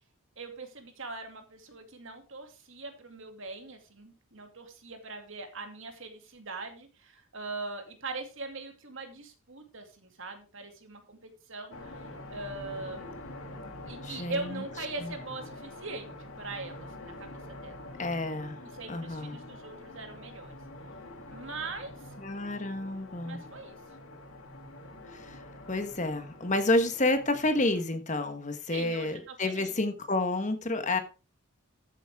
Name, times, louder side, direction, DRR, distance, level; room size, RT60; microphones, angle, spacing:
voice 1, 0.4-13.1 13.9-17.8 18.7-20.5 21.3-21.9 23.2-23.8 28.7-29.7, right 3 dB, 60° right, 2.5 m, -41 dB
sound 1, 11.7-27.8, left 1 dB, 65° left, 2.1 m, -46 dB
voice 2, 14.0-14.6 18.0-18.6 18.9-19.4 22.2-23.4 25.1-25.4 25.7-31.0, left 2 dB, 35° left, 1.3 m, -29 dB
13.5 x 8.2 x 3.6 m
head